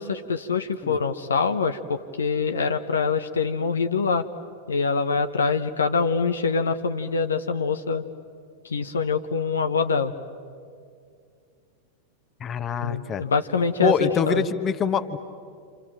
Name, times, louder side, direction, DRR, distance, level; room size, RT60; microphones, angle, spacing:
voice 1, 0.0-4.3 4.7-8.0 8.6-10.1 12.8-14.5, left 5 dB, 70° left, 8 dB, 0.9 m, -24 dB
voice 2, 12.4-13.2 13.8-15.2, left 6 dB, 25° left, 9 dB, 1.3 m, -25 dB
28.5 x 28.0 x 7.5 m, 2.3 s
figure-of-eight pair, 90°, 0 cm